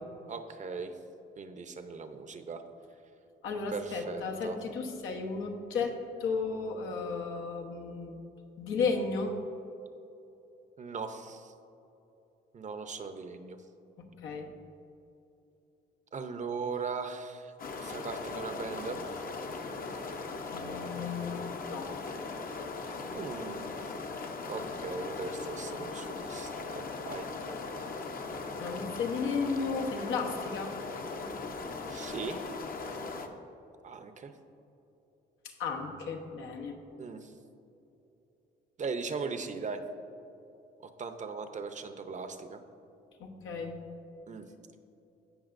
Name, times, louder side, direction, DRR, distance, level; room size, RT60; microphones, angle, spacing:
voice 1, 0.3-0.9 1.4-2.6 3.7-4.6 10.8-11.5 12.5-13.6 16.1-19.0 23.1-23.8 24.5-27.3 31.9-32.5 33.8-34.3 37.0-37.3 38.8-39.8 41.0-42.6 44.3-44.5, right 4 dB, 40° right, 8 dB, 0.7 m, -39 dB
voice 2, 3.4-8.2 8.6-9.3 14.0-14.5 20.5-21.9 28.6-30.7 35.6-36.7 43.2-43.8, left 4 dB, 85° left, 2 dB, 1.1 m, -34 dB
sound 1, 17.6-33.3, left 4 dB, 45° left, 0.8 m, -39 dB
16.0 x 5.7 x 2.6 m, 2.9 s
cardioid pair, 90°, 20 cm